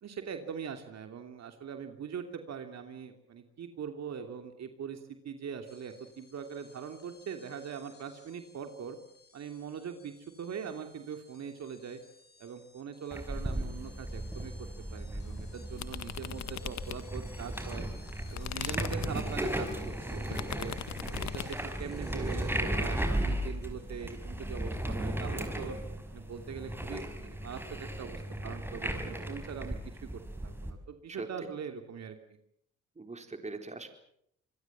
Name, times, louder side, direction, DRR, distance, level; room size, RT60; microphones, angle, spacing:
voice 1, 0.0-9.0 9.3-12.0 12.4-17.9 18.3-19.7 20.1-20.8 21.3-25.8 26.1-32.2, right 7 dB, 60° right, 6 dB, 2.9 m, -42 dB
sound 1, 5.7-24.8, left 3 dB, 35° left, 7.1 m, -60 dB
sound 2, 13.1-30.7, right 1 dB, 5° right, 5.3 m, -36 dB
sound 3, 15.8-17.3 17.7-21.7, left 10 dB, 65° left, 1.7 m, -40 dB
voice 2, 33.0-33.9, right 3 dB, 20° right, 6 dB, 4.0 m, -42 dB
26.5 x 21.5 x 7.4 m, 0.72 s
cardioid pair, 90°, 30 cm